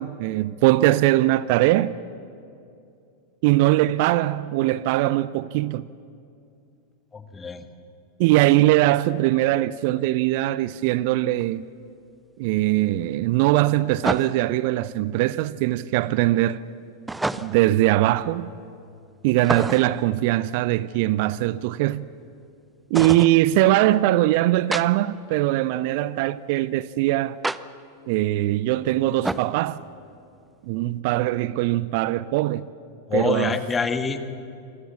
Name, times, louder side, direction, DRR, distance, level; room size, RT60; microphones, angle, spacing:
voice 1, 0.0-1.9 3.4-5.9 8.2-11.7 12.4-16.6 17.4-18.5 19.2-22.1 22.9-27.4 28.1-29.8 30.7-32.7 33.1-33.6, right 16 dB, 45° right, 0.6 m, -21 dB
voice 2, 7.1-7.6 33.1-34.2, left 5 dB, 15° left, 1.8 m, -26 dB
sound 1, 11.4-11.5 14.0-14.6 17.1-17.7 19.4-20.0 22.9-23.4 24.7-24.8 27.4-27.6 29.2-29.5, right 2 dB, 5° right, 0.7 m, -28 dB
27.0 x 25.0 x 7.2 m
figure-of-eight pair, 90°, 0 cm